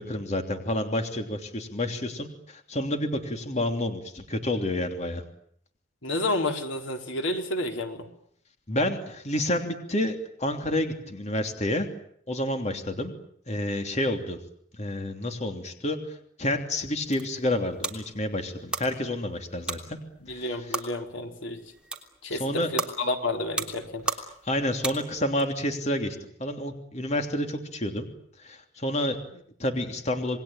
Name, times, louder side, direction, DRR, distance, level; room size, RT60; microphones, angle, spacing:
voice 1, 0.0-5.2 8.7-11.9 12.3-13.1 13.5-14.4 14.7-20.0 20.3-20.5 22.3-22.7 24.4-28.1 28.4-30.4, left 1 dB, 35° left, 5 dB, 3.1 m, -29 dB
voice 2, 6.0-8.1 20.2-21.6 22.2-24.0, left 2 dB, 80° left, 4 dB, 4.2 m, -30 dB
sound 1, 16.8-25.4, right 2 dB, 5° right, 3.2 m, -37 dB
28.0 x 21.0 x 9.0 m, 0.66 s
head